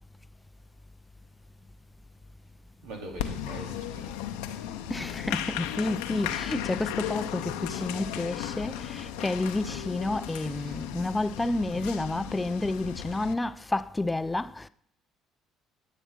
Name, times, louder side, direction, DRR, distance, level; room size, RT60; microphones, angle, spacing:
voice 1, 2.8-4.1 7.8-7.9 10.3-10.8, right 2 dB, 80° right, 2.7 m, -43 dB
Applause, 3.2-13.3, left 10 dB, 85° left, 0.7 m, -35 dB
voice 2, 4.9-14.7, left 2 dB, 15° left, 0.4 m, -30 dB
10.0 x 7.2 x 5.5 m
hypercardioid pair, 65°, 0 cm